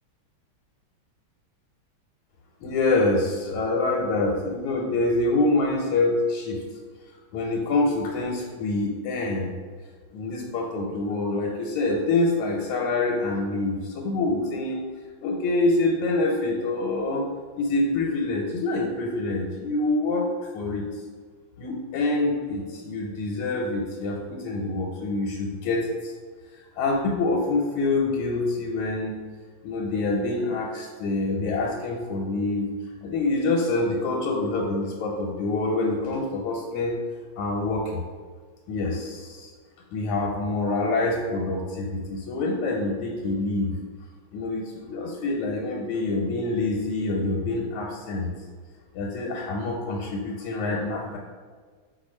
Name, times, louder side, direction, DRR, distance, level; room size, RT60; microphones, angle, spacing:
voice 1, 2.6-6.6 7.3-9.5 10.1-14.8 15.2-17.2 17.6-20.8 21.6-26.1 26.8-29.2 29.6-32.7 33.0-37.0 37.4-38.0 38.7-39.5 39.9-43.7 44.3-48.3 48.9-51.2, left 2 dB, 85° left, -1 dB, 1.5 m, -26 dB
4.8 x 2.3 x 4.2 m, 1.6 s
omnidirectional pair, 2.3 m